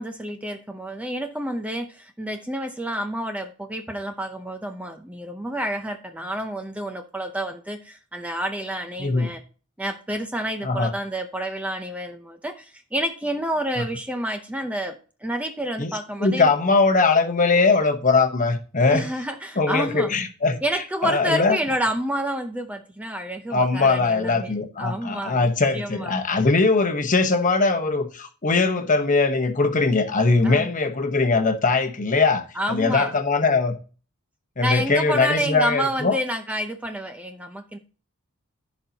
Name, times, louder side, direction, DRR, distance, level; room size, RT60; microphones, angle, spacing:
voice 1, 0.0-9.4 9.8-16.5 18.9-20.1 20.6-26.2 30.4-30.7 32.5-33.1 34.6-37.8, equal, 5° right, 0.6 m, -29 dB
voice 2, 9.0-9.3 10.6-10.9 15.8-15.9 16.2-19.1 19.6-20.6 21.0-21.6 23.5-33.8 34.6-36.2, left 3 dB, 35° left, 1.0 m, -21 dB
14.5 x 5.4 x 2.8 m
head